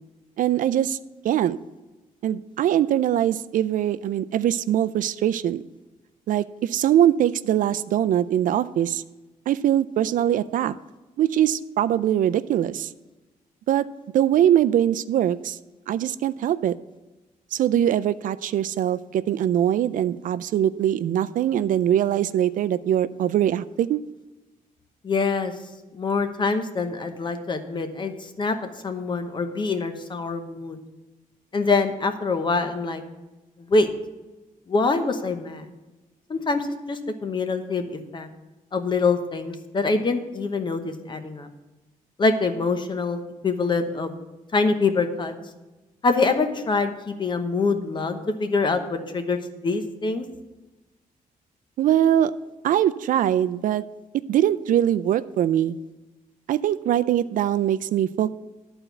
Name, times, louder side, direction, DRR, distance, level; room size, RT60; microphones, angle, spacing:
voice 1, 0.4-1.0 1.2-1.6 2.2-5.6 6.3-9.0 9.5-10.7 11.2-12.9 13.7-13.9 14.1-15.6 15.9-16.8 17.5-24.0 51.8-52.3 52.6-53.8 54.3-55.7 56.5-58.3, right 11 dB, 70° right, 14 dB, 0.4 m, -22 dB
voice 2, 25.0-25.5 25.9-30.8 31.5-33.0 33.6-33.9 34.7-35.6 36.3-38.3 38.7-41.5 42.2-44.1 44.5-45.3 46.0-50.2, left 3 dB, 35° left, 8 dB, 0.9 m, -25 dB
11.0 x 4.4 x 7.9 m, 1.1 s
cardioid pair, 130°, 14 cm